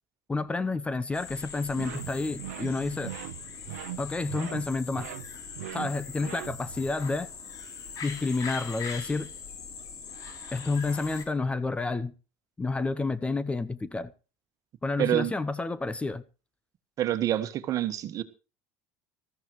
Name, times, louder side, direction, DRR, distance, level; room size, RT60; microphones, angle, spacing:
voice 1, 0.3-3.1 4.0-5.1 5.7-7.3 8.0-9.3 10.5-12.1 12.6-14.1 14.8-16.2, left 3 dB, 15° left, 0.8 m, -30 dB
sound 1, 1.1-11.3, left 6 dB, 50° left, 3.5 m, -42 dB
sound 2, 1.7-6.9, right 15 dB, 85° right, 0.7 m, -40 dB
voice 2, 15.0-15.3 17.0-18.2, right 12 dB, 50° right, 1.5 m, -27 dB
19.5 x 14.0 x 3.2 m
supercardioid pair, 95°, 8 cm